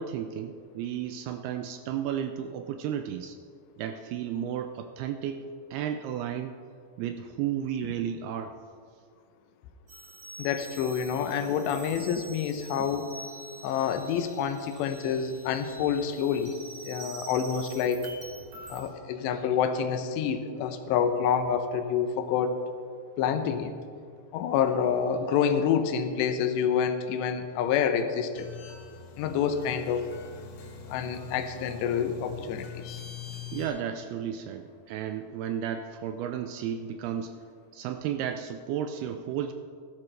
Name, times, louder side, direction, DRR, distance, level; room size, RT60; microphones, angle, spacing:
voice 1, 0.0-3.4 3.8-5.4 5.7-6.6 7.0-8.5 33.5-37.3 37.7-39.5, right 9 dB, 80° right, 7 dB, 2.3 m, -33 dB
sound 1, 9.9-18.8, right 2 dB, 60° right, 4.7 m, -46 dB
voice 2, 10.4-13.1 13.6-16.5 16.8-18.0 18.7-22.6 23.2-23.7 24.3-28.5 29.2-30.0 30.9-33.0, left 7 dB, 90° left, 8 dB, 3.0 m, -27 dB
sound 2, 28.3-33.7, left 7 dB, 70° left, 2.9 m, -43 dB
16.0 x 13.0 x 3.3 m, 2.2 s
omnidirectional pair, 4.9 m